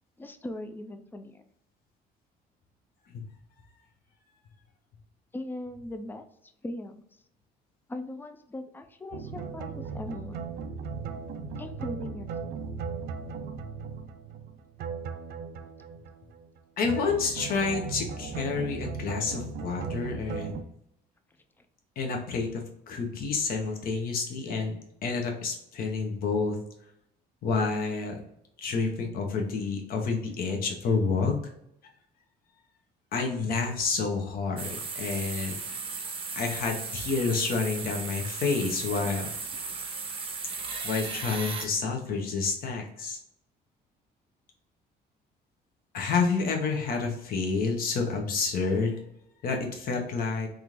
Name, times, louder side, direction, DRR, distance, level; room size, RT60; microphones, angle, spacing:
voice 1, 0.2-1.4 5.3-7.0 7.9-10.4 11.6-12.3 21.6-21.7, left 1 dB, 10° left, 7 dB, 0.4 m, -39 dB
sound 1, 9.1-16.6 16.9-20.6, right 5 dB, 70° right, 0.4 m, -37 dB
voice 2, 16.8-20.6 22.0-24.8 25.0-26.6 27.4-28.2 28.6-31.4 33.1-34.7 34.9-35.5 36.4-39.3 40.5-43.2 45.9-49.0 49.4-50.5, left 4 dB, 60° left, 2 dB, 0.9 m, -29 dB
sound 2, 34.6-41.7, right 4 dB, 30° right, 0.6 m, -36 dB
3.5 x 2.5 x 2.9 m, 0.77 s
cardioid pair, 110°, 17 cm